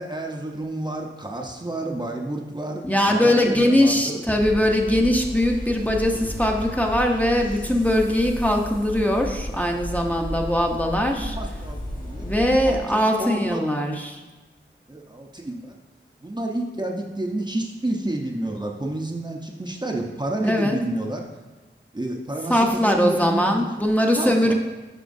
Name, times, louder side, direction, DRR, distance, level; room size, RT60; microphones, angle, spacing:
voice 1, 0.0-4.2 10.9-13.6 14.9-15.8 16.2-21.3 21.9-23.6 24.1-24.5, right 1 dB, 20° right, 0 dB, 0.8 m, -30 dB
voice 2, 2.8-11.4 12.2-14.2 20.4-20.8 22.5-24.5, left 1 dB, 5° left, 1 dB, 0.8 m, -21 dB
sound 1, 4.4-12.8, left 1 dB, 45° left, 1.7 m, -33 dB
10.0 x 4.4 x 2.6 m, 1.2 s
wide cardioid pair, 45°, 20 cm